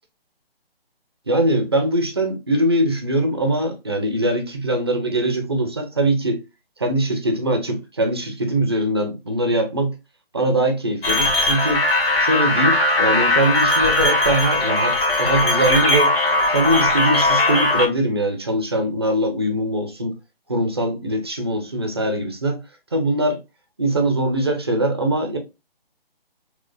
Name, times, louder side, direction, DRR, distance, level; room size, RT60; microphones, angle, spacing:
voice 1, 1.3-6.4 6.8-9.9 10.3-11.9 12.2-16.1 16.5-20.1 20.5-22.6 22.9-23.4 23.8-25.4, right 1 dB, 25° right, 0.5 m, -22 dB
sound 1, 11.0-17.9, left 2 dB, 75° left, 1.6 m, -19 dB
3.8 x 2.9 x 2.4 m
figure-of-eight pair, 160°, 30 cm